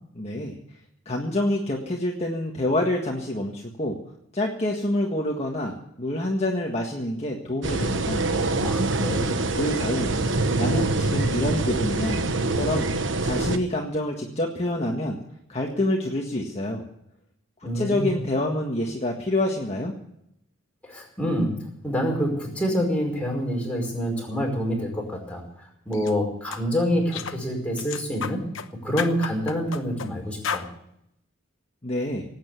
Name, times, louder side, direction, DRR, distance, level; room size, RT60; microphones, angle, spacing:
voice 1, 0.1-0.5 1.0-4.0 4.3-8.2 9.5-10.1 10.5-12.2 12.5-12.9 13.2-15.2 15.5-16.8 17.6-19.9 31.8-32.2, left 1 dB, 30° left, 0 dB, 1.7 m, -27 dB
sound 1, 7.6-13.6, right 2 dB, 65° right, 1.2 m, -25 dB
voice 2, 8.6-9.3 17.6-18.1 20.9-21.5 21.8-25.4 25.8-28.4 28.8-30.7, equal, 5° left, -1 dB, 5.0 m, -26 dB
sound 2, 25.9-26.1 26.5-26.6 27.1-27.4 27.8-28.7 29.0-30.1 30.4-30.7, left 6 dB, 70° left, 1.0 m, -32 dB
18.5 x 9.0 x 8.1 m, 0.78 s
head